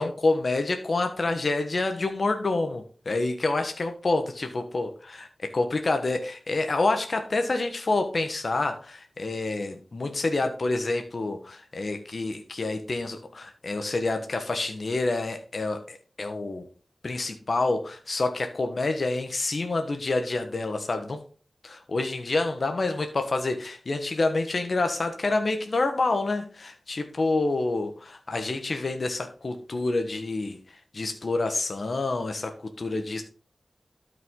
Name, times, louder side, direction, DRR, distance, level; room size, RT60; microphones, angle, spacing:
voice 1, 0.0-16.6 17.0-21.2 21.6-33.2, left 2 dB, 65° left, 6 dB, 1.2 m, -28 dB
12.5 x 5.8 x 3.8 m, 0.39 s
wide cardioid pair, 60°, 0 cm